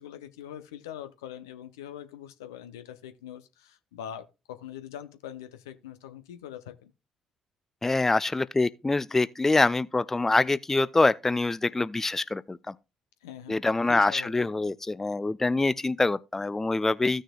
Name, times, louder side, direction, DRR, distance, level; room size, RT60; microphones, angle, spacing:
voice 1, 0.0-6.9 13.2-13.6 13.9-14.5, left 10 dB, 80° left, 0.7 m, -43 dB
voice 2, 7.8-12.7 13.5-17.2, left 3 dB, 15° left, 0.4 m, -25 dB
15.5 x 6.3 x 2.3 m
figure-of-eight pair, 45°, 2 cm